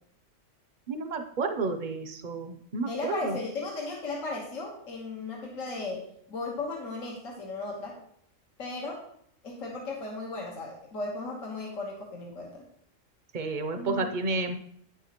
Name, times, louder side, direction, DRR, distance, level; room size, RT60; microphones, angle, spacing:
voice 1, 0.9-3.4 13.3-14.6, right 3 dB, 50° right, 7 dB, 0.6 m, -31 dB
voice 2, 2.9-8.0 8.6-9.0 9.4-12.6 13.7-14.1, left 3 dB, 75° left, -2 dB, 1.7 m, -36 dB
9.3 x 7.2 x 3.0 m, 0.68 s
omnidirectional pair, 1.4 m